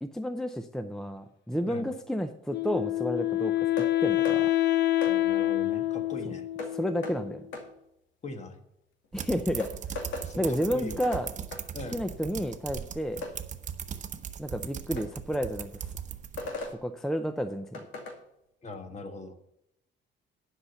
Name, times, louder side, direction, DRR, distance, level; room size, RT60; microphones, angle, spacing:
voice 1, 0.0-4.5 6.7-7.4 9.1-10.1 10.4-11.3 11.9-13.3 14.4-15.8 16.7-17.8, equal, ahead, 9 dB, 0.5 m, -31 dB
Wind instrument woodwind instrument, 2.5-7.6, left 14 dB, 60° left, 0.7 m, -27 dB
sound 1, 3.8-3.9 4.2-4.4 5.0-5.2 6.6-6.7 7.0-7.2 7.5-7.7 9.0-9.1 9.6-10.3 11.0-11.2 11.5-11.6 13.2-13.4 15.0-15.1 16.4-16.8 17.7-18.2, left 3 dB, 75° left, 2.3 m, -37 dB
voice 2, 5.1-6.5 8.2-8.6 10.2-11.0 11.7-12.0 18.6-19.4, left 2 dB, 35° left, 7 dB, 1.4 m, -40 dB
sound 2, 9.1-16.7, right 8 dB, 40° right, 0.8 m, -39 dB
11.0 x 5.7 x 6.8 m, 0.81 s
cardioid pair, 135°, 20 cm